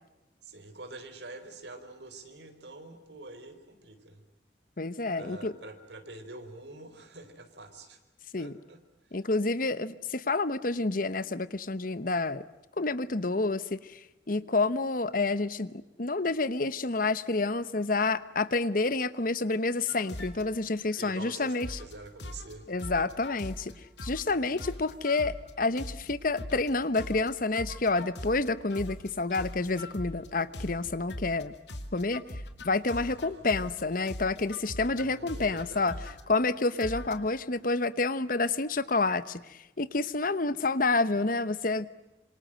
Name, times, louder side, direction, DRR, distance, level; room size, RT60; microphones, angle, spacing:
voice 1, 0.4-4.2 5.2-8.0 8.4-8.8 21.0-22.7 23.7-23.8 24.4-24.5 33.0-33.4 35.0-35.9, right 2 dB, 75° right, 8 dB, 4.3 m, -46 dB
voice 2, 4.8-5.5 8.3-8.5 9.1-12.4 12.8-14.0 14.3-21.8 22.7-23.7 24.0-31.5 31.9-32.2 32.6-35.9 36.3-41.9, left 3 dB, 50° left, 15 dB, 1.1 m, -29 dB
sound 1, 19.9-20.4 20.9-21.9 22.2-22.5 22.8-23.7 24.0-24.3 24.6-26.7 26.9-31.4 31.7-33.8 34.1-36.2 36.8-37.4, left 1 dB, 75° left, 2.6 m, -41 dB
27.0 x 27.0 x 7.7 m, 1.0 s
head